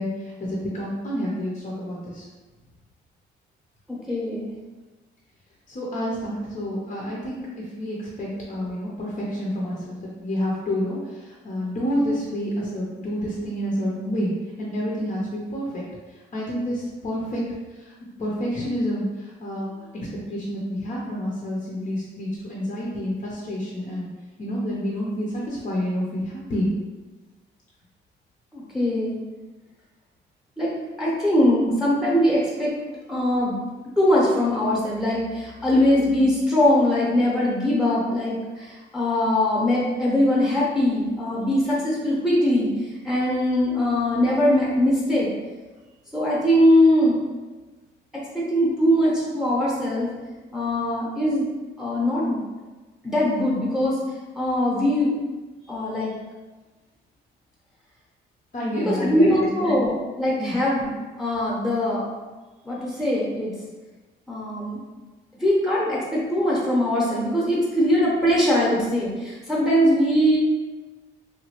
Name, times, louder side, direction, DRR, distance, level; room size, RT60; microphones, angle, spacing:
voice 1, 0.0-2.2 5.7-14.3 14.6-15.8 16.1-17.4 17.7-17.9 18.2-24.1 24.4-26.7 58.5-59.8 60.4-60.6, equal, 35° left, -4 dB, 0.7 m, -29 dB
voice 2, 3.9-4.5 28.5-29.2 30.6-30.7 31.0-32.8 33.1-33.6 34.0-42.7 43.0-45.3 46.1-47.2 48.1-50.1 50.5-51.5 51.8-52.4 53.0-54.0 54.4-55.1 55.7-56.1 58.8-60.9 61.2-62.1 62.6-63.5 64.3-64.8 65.4-70.4, left 1 dB, ahead, -5 dB, 0.9 m, -21 dB
3.0 x 2.2 x 2.9 m, 1.2 s
cardioid pair, 90°, 20 cm